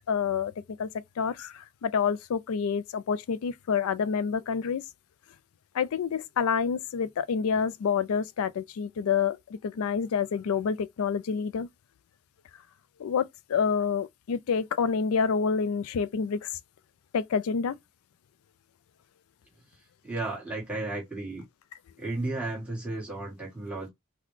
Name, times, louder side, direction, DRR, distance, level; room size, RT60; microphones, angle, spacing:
voice 1, 0.1-0.5 0.8-0.9 1.2-4.8 5.7-9.4 9.6-11.7 13.0-16.5 17.1-17.8, left 6 dB, 75° left, 0.3 m, -28 dB
voice 2, 20.0-21.4 22.0-23.9, right 2 dB, 5° right, 1.3 m, -33 dB
3.9 x 2.1 x 3.1 m
head